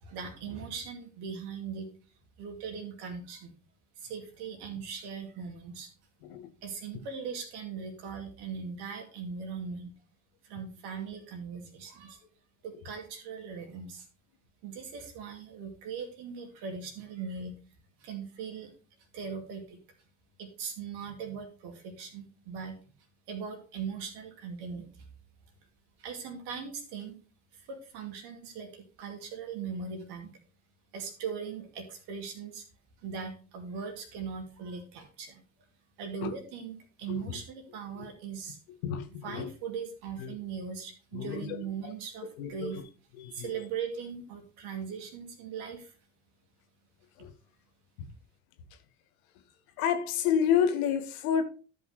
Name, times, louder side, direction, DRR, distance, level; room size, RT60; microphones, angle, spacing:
voice 1, 0.0-1.9 2.4-3.5 4.0-5.9 6.6-9.9 10.4-12.2 12.6-14.1 14.6-17.5 18.0-18.7 19.1-19.8 20.4-22.7 23.3-25.0 26.0-27.2 27.5-30.3 30.9-32.6 33.0-35.4 36.0-38.6 39.2-42.8 43.3-45.9, right 6 dB, 65° right, 2.5 m, -39 dB
voice 2, 38.8-39.5 40.2-40.3 41.1-41.5 41.8-41.9 42.4-42.7 43.2-43.5 47.2-47.3 49.8-51.4, left 8 dB, 75° left, 1.3 m, -29 dB
13.0 x 5.6 x 3.1 m
hypercardioid pair, 60°, 43 cm